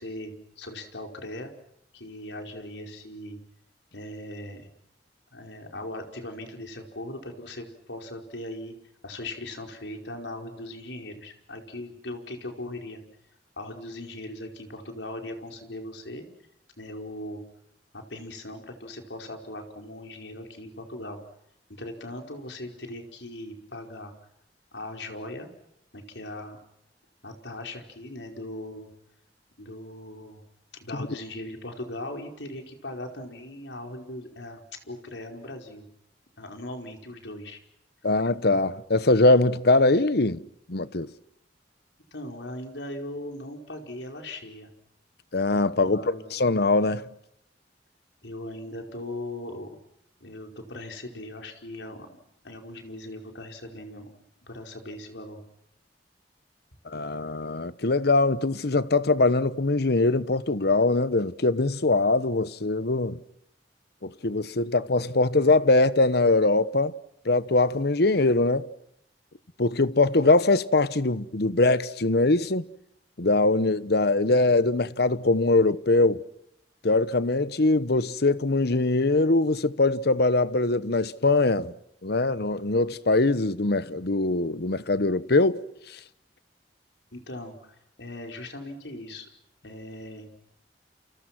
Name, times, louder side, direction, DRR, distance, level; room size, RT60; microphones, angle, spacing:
voice 1, 0.0-1.5 1.9-3.4 3.9-4.7 5.3-8.7 9.0-13.0 13.6-16.2 16.8-17.4 17.9-21.2 21.7-24.1 24.7-25.5 25.9-26.6 27.2-28.9 29.6-30.4 30.8-35.8 36.4-37.6 42.1-44.7 45.8-46.3 48.2-49.7 50.2-52.1 52.4-54.1 54.4-55.4 87.1-89.3 89.6-90.3, left 1 dB, 80° left, 5.0 m, -39 dB
voice 2, 38.0-41.1 45.3-47.1 56.8-63.2 64.0-66.9 67.2-68.7 69.6-72.6 73.2-76.2 76.8-81.7 82.0-86.0, left 2 dB, 65° left, 1.0 m, -22 dB
29.5 x 29.0 x 6.1 m
head